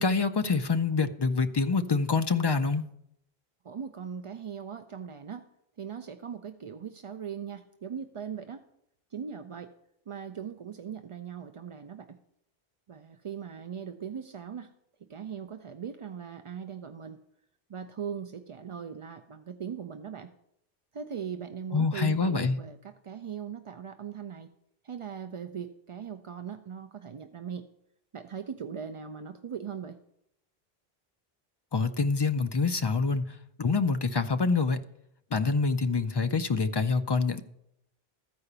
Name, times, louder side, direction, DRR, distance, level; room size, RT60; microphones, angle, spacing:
voice 1, 0.0-2.8 21.7-22.6 31.7-34.8 35.3-37.4, left 4 dB, 45° left, 9 dB, 0.3 m, -26 dB
voice 2, 3.6-5.5 5.8-8.6 9.1-9.7 10.1-12.2 12.9-14.7 15.0-17.2 17.7-20.3 20.9-24.5 24.8-27.6 28.1-30.0, right 7 dB, 50° right, 7 dB, 0.4 m, -39 dB
14.0 x 4.9 x 6.7 m, 0.78 s
omnidirectional pair, 1.0 m